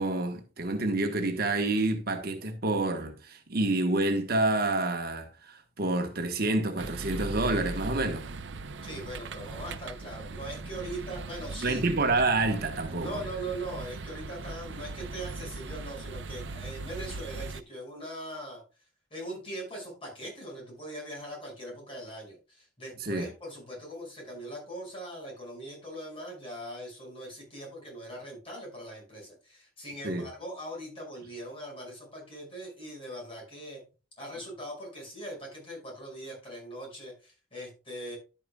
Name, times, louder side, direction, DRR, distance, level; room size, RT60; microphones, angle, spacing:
voice 1, 0.0-8.3 11.6-13.2 23.0-23.3 30.0-30.3, right 2 dB, 55° right, 1.2 m, -28 dB
sound 1, 6.8-17.6, right 3 dB, 75° right, 0.6 m, -39 dB
voice 2, 8.8-11.8 12.9-18.6 19.1-33.8 34.2-38.2, right 1 dB, 30° left, 5.8 m, -41 dB
11.0 x 8.8 x 2.3 m
head